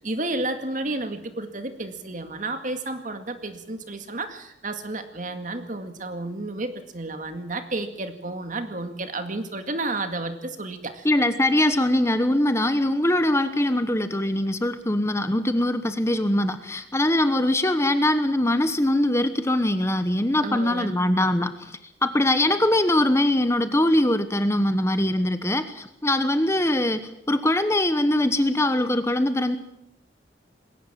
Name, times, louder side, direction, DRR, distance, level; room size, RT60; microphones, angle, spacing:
voice 1, 0.0-11.1 20.4-20.9, right 2 dB, 45° right, 7 dB, 2.1 m, -31 dB
voice 2, 11.0-21.7 22.0-29.6, left 1 dB, 15° left, 10 dB, 1.1 m, -22 dB
21.0 x 18.0 x 7.5 m, 0.81 s
head